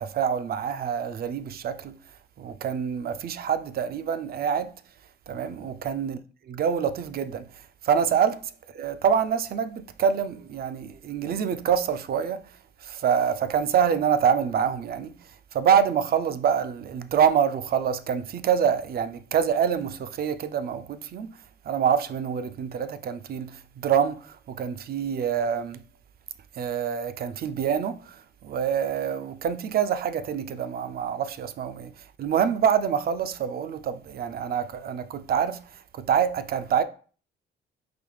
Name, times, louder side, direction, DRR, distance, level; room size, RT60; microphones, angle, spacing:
voice 1, 0.0-2.0 2.4-4.7 5.3-6.2 6.5-7.5 7.8-8.4 8.7-12.4 12.8-15.2 15.5-21.3 21.7-25.8 26.6-31.9 32.2-35.6 35.9-36.8, right 7 dB, 50° right, 0.4 m, -26 dB
3.9 x 2.7 x 3.2 m
cardioid pair, 90°, 20 cm